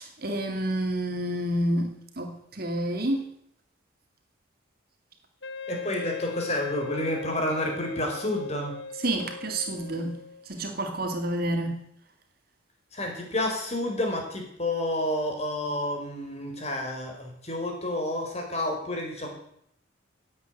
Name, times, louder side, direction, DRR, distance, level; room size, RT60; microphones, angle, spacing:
voice 1, 0.0-3.3 9.0-10.2 10.5-11.8, right 1 dB, 50° right, 2.4 m, -29 dB
Wind instrument woodwind instrument, 5.4-10.5, left 5 dB, 60° left, 0.9 m, -39 dB
voice 2, 5.7-8.7 12.9-19.3, left 1 dB, 30° left, 4.5 m, -30 dB
17.0 x 8.6 x 9.2 m
head